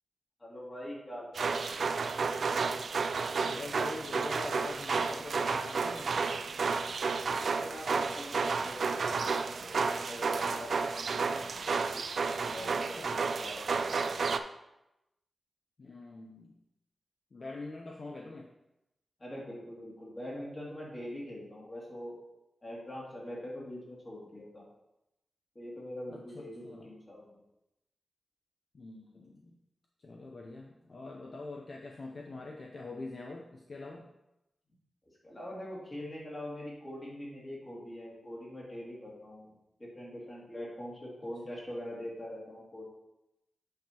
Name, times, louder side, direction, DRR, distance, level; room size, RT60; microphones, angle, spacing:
voice 1, 0.4-1.9 7.3-12.0 12.5-14.4 19.2-22.2 22.6-24.6 25.5-27.4 35.2-39.5 39.8-42.8, left 1 dB, 25° left, -5 dB, 2.4 m, -43 dB
sound 1, 1.4-14.4, right 4 dB, 65° right, 0.3 m, -31 dB
voice 2, 3.4-6.1 12.8-13.2 15.8-16.6 17.3-18.5 26.1-26.9 28.7-29.6 30.0-34.1, left 3 dB, 50° left, 0 dB, 0.7 m, -44 dB
8.8 x 5.5 x 2.9 m, 0.90 s
wide cardioid pair, 150°, 0 cm